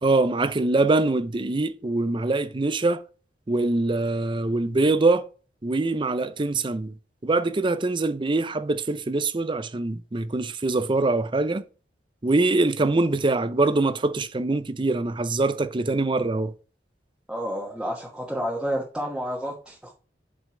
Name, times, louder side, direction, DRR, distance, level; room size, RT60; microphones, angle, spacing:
voice 1, 0.0-3.0 3.5-5.3 5.6-6.9 7.2-11.6 12.2-16.5, right 2 dB, 30° right, 0.5 m, -23 dB
voice 2, 17.3-19.9, equal, 5° right, 1.2 m, -30 dB
7.5 x 5.1 x 3.8 m
head